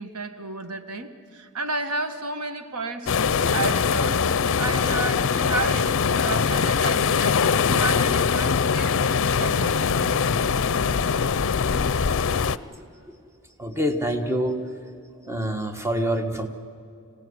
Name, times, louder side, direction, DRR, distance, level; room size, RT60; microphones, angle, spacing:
voice 1, 0.0-8.9 9.2-10.4, right 3 dB, 85° right, 9 dB, 1.5 m, -32 dB
sound 1, 3.1-12.6, left 6 dB, 60° left, 0.6 m, -22 dB
voice 2, 12.7-13.1 13.6-14.6 15.2-16.5, equal, 10° right, 5 dB, 1.4 m, -26 dB
26.0 x 17.0 x 9.6 m, 2.4 s
head